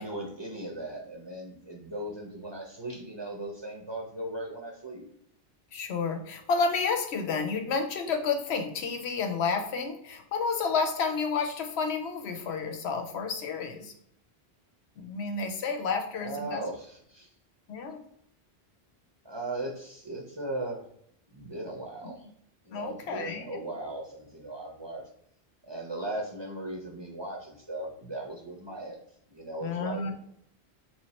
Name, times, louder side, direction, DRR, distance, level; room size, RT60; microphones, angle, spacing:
voice 1, 0.0-5.0 16.2-17.3 19.2-20.8 21.3-22.2 22.7-25.0 25.6-29.0 29.3-30.1, right 1 dB, 30° right, 0 dB, 0.6 m, -38 dB
voice 2, 5.7-13.9 15.0-16.6 17.7-18.0 22.7-23.6 29.6-30.1, left 5 dB, 90° left, 5 dB, 0.9 m, -30 dB
3.2 x 3.2 x 4.1 m, 0.71 s
omnidirectional pair, 1.1 m